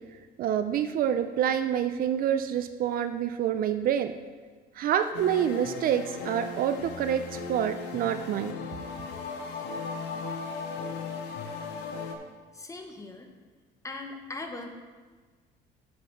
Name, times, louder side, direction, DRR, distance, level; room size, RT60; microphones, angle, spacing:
voice 1, 0.4-4.1 4.8-8.5, right 9 dB, 60° right, 10 dB, 0.5 m, -27 dB
sound 1, 5.1-12.2, left 5 dB, 90° left, 0.9 m, -37 dB
voice 2, 12.5-13.3 13.8-14.7, left 3 dB, 20° left, 4 dB, 1.0 m, -39 dB
7.3 x 4.9 x 5.8 m, 1.5 s
cardioid pair, 110°, 17 cm